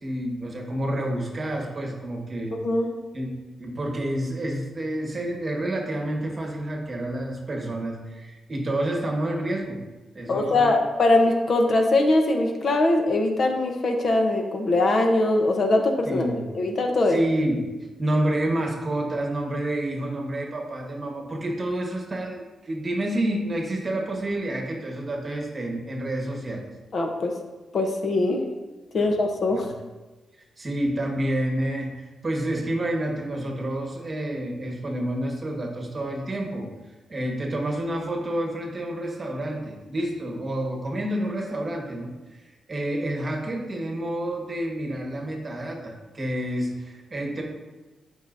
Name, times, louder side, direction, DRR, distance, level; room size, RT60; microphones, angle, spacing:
voice 1, 0.0-2.6 3.1-3.3 3.6-9.8 10.1-10.7 16.0-16.5 17.1-17.7 18.0-26.6 29.0-29.1 29.5-29.7 30.6-31.9 32.2-36.7 37.1-47.4, right 1 dB, 25° right, 0 dB, 1.3 m, -29 dB
voice 2, 2.5-2.9 10.3-17.2 26.9-27.3 27.7-28.4 28.9-29.7, left 2 dB, 45° left, 3 dB, 0.8 m, -22 dB
11.0 x 5.5 x 2.6 m, 1.2 s
wide cardioid pair, 160°, 0 cm